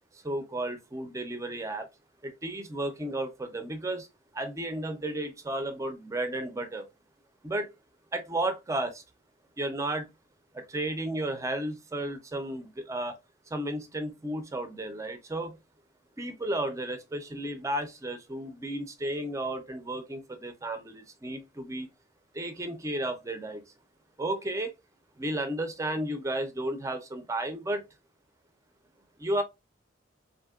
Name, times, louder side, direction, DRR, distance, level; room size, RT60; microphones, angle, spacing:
voice 1, 0.1-1.9 2.2-4.1 4.3-6.9 7.4-7.7 8.1-9.0 9.6-10.1 10.5-13.1 13.5-15.6 16.2-21.9 22.3-23.6 24.2-24.7 25.2-27.9 29.2-29.4, right 1 dB, 15° right, 0.4 m, -33 dB
3.5 x 2.5 x 2.3 m
head